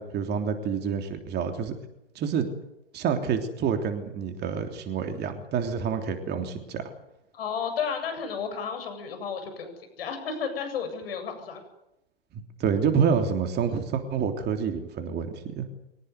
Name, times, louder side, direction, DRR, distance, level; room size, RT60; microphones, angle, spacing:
voice 1, 0.0-1.7 2.2-2.5 2.9-6.8 12.6-15.7, right 6 dB, 30° right, 5 dB, 3.3 m, -28 dB
voice 2, 7.3-11.6, left 6 dB, 65° left, 8 dB, 7.9 m, -32 dB
24.0 x 19.0 x 9.6 m, 0.87 s
hypercardioid pair, 105°, 31 cm